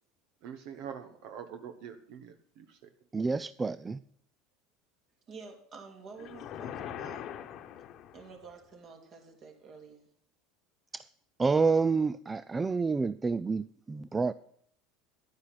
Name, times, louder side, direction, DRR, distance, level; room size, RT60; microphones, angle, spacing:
voice 1, 0.4-2.8, right 8 dB, 65° right, 7 dB, 1.2 m, -44 dB
voice 2, 3.1-4.0 10.9-11.1 11.4-14.3, right 4 dB, 20° right, 16 dB, 0.4 m, -28 dB
voice 3, 5.3-7.3 8.1-10.1, right 4 dB, 45° right, 4 dB, 2.8 m, -49 dB
sound 1, 6.2-8.5, left 10 dB, 50° left, 1.1 m, -42 dB
10.5 x 9.6 x 5.8 m, 0.67 s
supercardioid pair, 100°, 0 cm